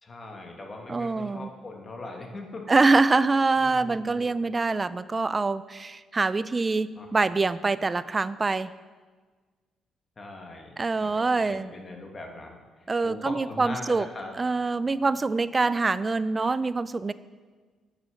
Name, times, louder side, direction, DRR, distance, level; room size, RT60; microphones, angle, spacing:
voice 1, 0.0-2.8 3.6-4.5 7.0-7.3 10.2-12.6 13.0-14.3, left 2 dB, 35° left, 2 dB, 1.4 m, -40 dB
voice 2, 0.9-1.5 2.7-8.7 10.8-11.7 12.9-14.1 14.4-17.1, right 3 dB, 25° right, 16 dB, 0.3 m, -25 dB
6.5 x 6.0 x 7.1 m, 1.4 s
cardioid pair, 90°, 0 cm